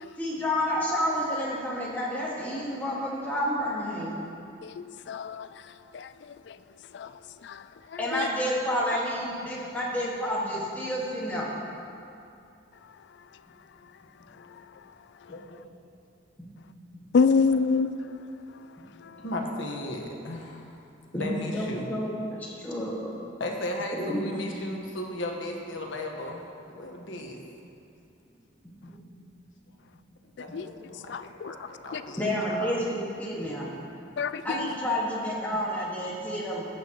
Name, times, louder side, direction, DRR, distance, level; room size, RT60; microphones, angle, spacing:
voice 1, 0.2-4.2 8.0-11.5 16.4-16.5 21.1-23.1 23.9-24.2 27.0-27.1 28.8-28.9 32.2-33.7 34.4-36.7, equal, 10° left, 1.7 m, -30 dB
voice 2, 5.1-5.5 8.2-8.3 17.1-17.9 30.5-30.6 31.1-31.5 34.2-34.4, left 5 dB, 60° left, 0.3 m, -24 dB
voice 3, 15.3-15.7 19.2-20.8 21.1-21.9 23.4-27.4 30.4-32.2 32.5-32.8, left 1 dB, 75° left, 1.3 m, -36 dB
14.5 x 9.1 x 3.0 m
head